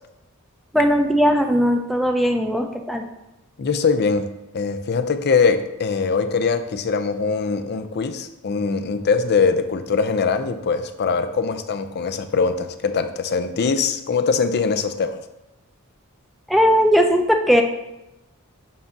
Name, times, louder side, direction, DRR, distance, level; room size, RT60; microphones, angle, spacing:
voice 1, 0.7-3.0 16.5-17.6, equal, ahead, 3 dB, 0.5 m, -18 dB
voice 2, 3.6-4.3 4.5-15.2, left 5 dB, 50° left, 9 dB, 0.5 m, -22 dB
7.4 x 2.7 x 5.8 m, 0.93 s
head